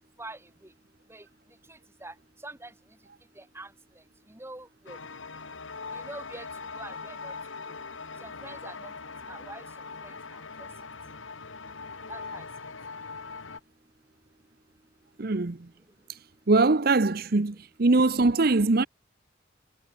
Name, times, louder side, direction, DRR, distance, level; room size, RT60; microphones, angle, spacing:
voice 1, 3.4-3.7 4.3-5.0 5.9-6.4 6.7-7.3 8.2-8.9 9.3-9.6 12.1-12.4, right 2 dB, 15° right, 2.7 m, -43 dB
sound 1, 4.9-13.6, left 4 dB, 90° left, 2.2 m, -41 dB
voice 2, 15.2-15.7 16.1-16.2 16.5-18.9, right 3 dB, 50° right, 0.8 m, -22 dB
head